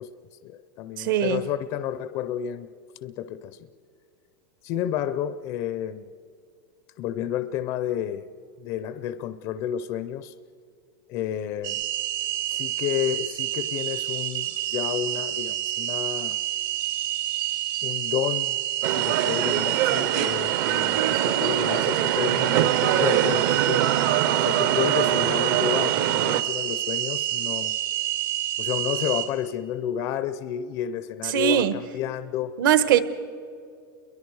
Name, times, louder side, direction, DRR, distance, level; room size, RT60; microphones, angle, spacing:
voice 1, 0.0-2.7 3.0-3.6 4.6-6.1 7.0-8.3 8.6-10.3 11.1-11.8 12.5-16.4 17.8-18.6 19.0-23.9 24.4-27.7 28.6-32.5, left 10 dB, 30° left, 12 dB, 0.5 m, -30 dB
voice 2, 1.0-1.4 31.2-31.7 32.6-33.0, right 10 dB, 70° right, 12 dB, 1.2 m, -20 dB
sound 1, 11.6-29.2, right 13 dB, 85° right, 4.0 m, -28 dB
sound 2, 18.8-26.4, right 12 dB, 45° right, 0.7 m, -24 dB
29.0 x 22.5 x 4.7 m, 2.4 s
supercardioid pair, 180°, 11 cm